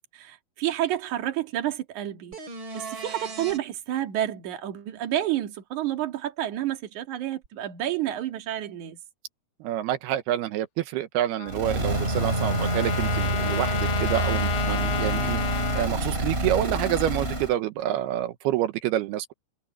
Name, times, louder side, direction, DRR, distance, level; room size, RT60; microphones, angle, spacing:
voice 1, 0.1-2.4 2.7-9.0, right 12 dB, 55° right, 3.1 m, -30 dB
sound 1, 2.3-3.6 7.4-7.5, right 4 dB, 35° right, 3.4 m, -37 dB
voice 2, 9.6-15.4 15.7-19.3, right 12 dB, 85° right, 3.0 m, -28 dB
Trumpet, 11.4-15.9, left 12 dB, 70° left, 2.2 m, -32 dB
sound 2, 11.5-17.6, right 1 dB, 15° right, 3.0 m, -27 dB
omnidirectional pair, 4.5 m